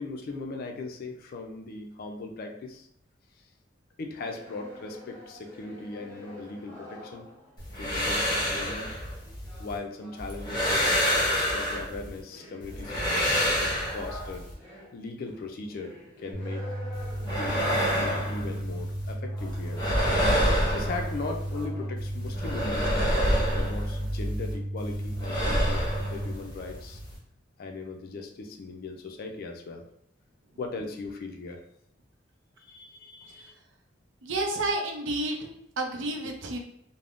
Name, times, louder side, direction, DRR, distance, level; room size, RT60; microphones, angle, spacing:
voice 1, 0.0-2.9 4.0-7.3 7.8-8.9 9.6-11.1 11.5-14.5 14.9-16.7 17.3-19.8 20.7-27.0 27.6-29.8 30.6-31.6 32.6-33.5, left 3 dB, 50° left, 3 dB, 0.4 m, -38 dB
sound 1, 4.1-7.6 8.6-18.5 19.2-21.9, left 1 dB, 5° left, 1.1 m, -45 dB
sound 2, 7.6-9.8 10.2-12.2 12.6-14.5 16.9-19.1 19.4-21.6 22.0-24.5 24.8-27.2, equal, 20° left, 0.8 m, -28 dB
sound 3, 16.3-26.3, right 1 dB, 25° right, 0.8 m, -34 dB
voice 2, 34.2-36.6, right 2 dB, 70° right, 3 dB, 0.5 m, -30 dB
3.4 x 2.0 x 2.4 m, 0.73 s
head